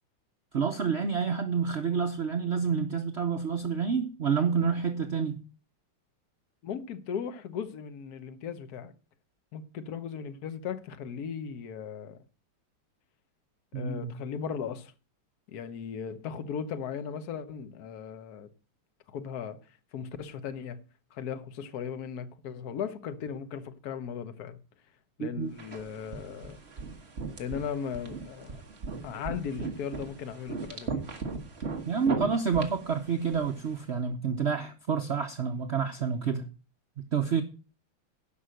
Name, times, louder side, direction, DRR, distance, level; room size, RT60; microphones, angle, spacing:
voice 1, 0.5-5.4 13.7-14.1 25.2-25.5 31.8-36.5 37.1-37.4, right 6 dB, 75° right, 0.6 m, -28 dB
voice 2, 6.6-8.9 9.5-12.2 13.7-14.9 15.5-18.5 19.1-20.8 21.1-24.6 25.2-26.6 27.4-28.6 29.0-31.1, left 7 dB, 55° left, 1.3 m, -37 dB
sound 1, 25.6-33.8, right 4 dB, 35° right, 1.5 m, -38 dB
11.0 x 5.7 x 6.5 m
omnidirectional pair, 2.3 m